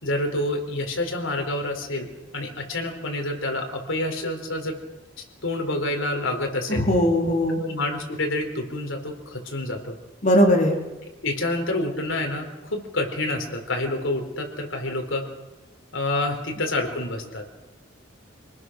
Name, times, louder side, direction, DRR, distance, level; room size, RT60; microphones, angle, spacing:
voice 1, 0.0-2.0 2.3-4.8 5.4-6.8 7.6-10.0 11.2-15.2 15.9-17.4, left 2 dB, 75° left, 3 dB, 4.4 m, -28 dB
voice 2, 6.7-7.6 10.2-10.8, equal, 40° left, 1 dB, 4.1 m, -19 dB
26.5 x 19.5 x 6.5 m, 1.1 s
head